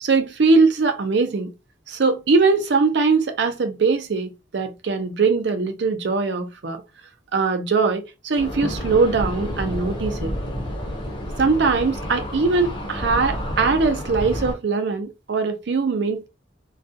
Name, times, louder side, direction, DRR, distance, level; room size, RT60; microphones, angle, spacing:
voice 1, 0.0-1.5 1.9-6.8 7.3-10.3 11.4-16.3, right 4 dB, 65° right, 0.5 m, -21 dB
sound 1, 8.4-14.5, equal, 25° left, 0.7 m, -29 dB
2.3 x 2.2 x 2.6 m
head